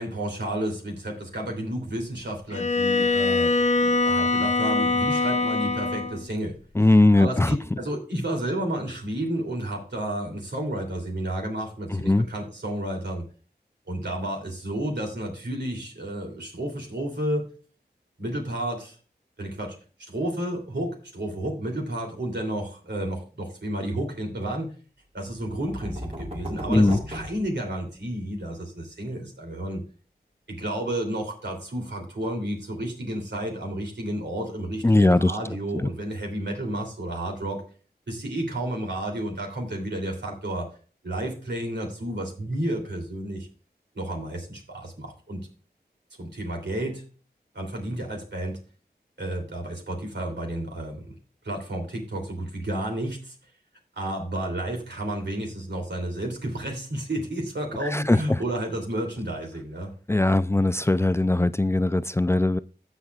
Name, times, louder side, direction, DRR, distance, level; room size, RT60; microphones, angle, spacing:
voice 1, 0.0-6.6 7.1-13.2 13.9-17.5 18.2-18.9 19.4-19.7 20.1-24.7 25.1-29.8 30.5-37.6 38.1-40.7 41.0-43.5 43.9-45.4 46.2-47.0 47.5-48.6 49.2-51.1 51.4-53.3 54.0-59.9, right 1 dB, 85° right, 3.0 m, -31 dB
Bowed string instrument, 2.5-6.2, left 3 dB, 40° left, 0.8 m, -23 dB
voice 2, 6.7-7.6 11.9-12.3 26.7-27.0 34.8-35.4 57.8-58.4 60.1-62.6, left 2 dB, 15° left, 0.4 m, -20 dB
sound 1, 25.3-28.2, equal, 35° right, 1.9 m, -37 dB
16.5 x 5.9 x 2.4 m
wide cardioid pair, 45°, 18 cm